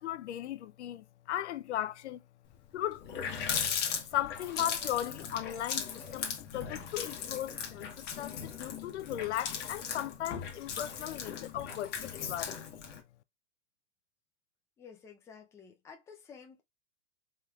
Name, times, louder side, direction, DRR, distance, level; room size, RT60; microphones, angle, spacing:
voice 1, 0.0-2.2 2.7-3.0 4.1-12.7, left 12 dB, 70° left, 0.5 m, -37 dB
Water tap faucet, 2.6-2.7 2.9-13.0, left 7 dB, 30° left, 1.0 m, -38 dB
voice 2, 14.8-16.6, left 6 dB, 10° left, 0.5 m, -52 dB
4.3 x 3.5 x 2.3 m
hypercardioid pair, 135°, 35 cm